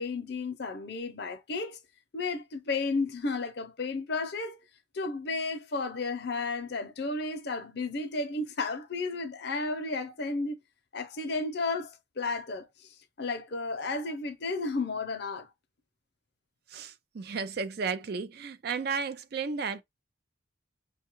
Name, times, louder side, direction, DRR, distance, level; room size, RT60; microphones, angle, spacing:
voice 1, 0.0-1.8 2.1-4.6 4.9-10.6 10.9-12.9 13.2-15.5, left 3 dB, 55° left, 0.6 m, -33 dB
voice 2, 16.7-19.8, right 5 dB, 50° right, 0.4 m, -33 dB
5.4 x 2.3 x 3.0 m
head